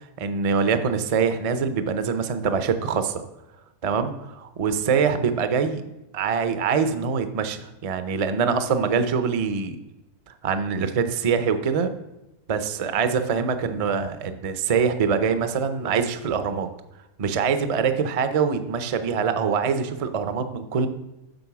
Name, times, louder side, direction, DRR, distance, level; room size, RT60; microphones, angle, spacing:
voice 1, 0.2-3.2 3.8-5.8 6.1-9.8 10.4-11.9 12.5-16.7 17.2-20.9, right 6 dB, 45° right, 9 dB, 0.4 m, -24 dB
7.9 x 5.4 x 5.9 m, 0.98 s
omnidirectional pair, 1.4 m